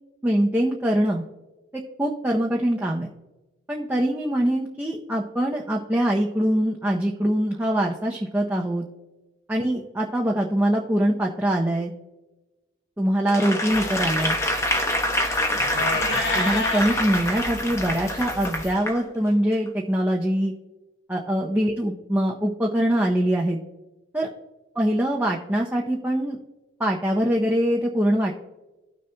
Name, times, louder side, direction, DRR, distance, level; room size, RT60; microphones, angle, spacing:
voice 1, 0.2-1.2 2.0-3.1 3.7-8.9 9.5-11.9 13.0-14.4 16.3-20.5 21.1-23.6 24.1-24.3 24.8-26.4 26.8-28.3, right 1 dB, 10° right, -1 dB, 0.6 m, -23 dB
Applause / Crowd, 13.3-19.0 19.5-19.7, left 1 dB, 15° left, 0.8 m, -26 dB
sound 1, 13.7-18.7, left 2 dB, 60° left, 1.2 m, -32 dB
16.5 x 6.6 x 2.2 m, 1.1 s
head